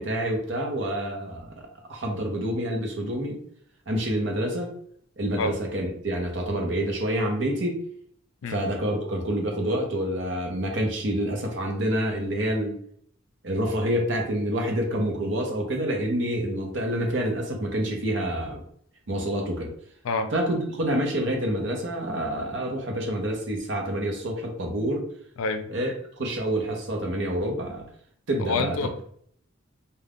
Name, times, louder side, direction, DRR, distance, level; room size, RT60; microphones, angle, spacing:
voice 1, 0.0-3.4 3.9-4.7 5.2-7.8 8.5-12.8 13.4-18.6 19.1-19.7 20.3-25.1 25.7-27.8 28.3-28.9, right 1 dB, 60° right, 1 dB, 0.7 m, -27 dB
voice 2, 25.4-25.7 28.4-29.0, left 3 dB, 85° left, 8 dB, 0.4 m, -27 dB
2.4 x 2.2 x 3.4 m, 0.63 s
head